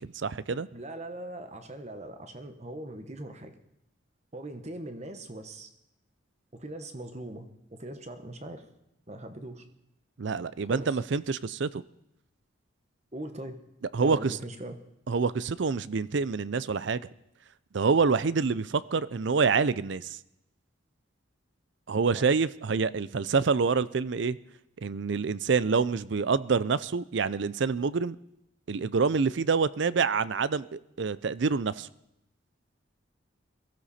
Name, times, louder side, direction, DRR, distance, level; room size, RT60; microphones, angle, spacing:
voice 1, 0.0-0.7 10.2-11.8 13.9-14.4 15.1-17.0 17.7-20.2 21.9-24.4 24.8-28.2 28.7-31.9, right 5 dB, 60° right, 17 dB, 0.5 m, -27 dB
voice 2, 0.7-3.6 4.3-5.7 6.5-8.7 9.1-9.6 10.6-10.9 13.1-13.6 14.0-14.8 22.1-22.2, right 1 dB, 35° right, 7 dB, 1.1 m, -40 dB
22.0 x 14.5 x 4.3 m, 0.83 s
head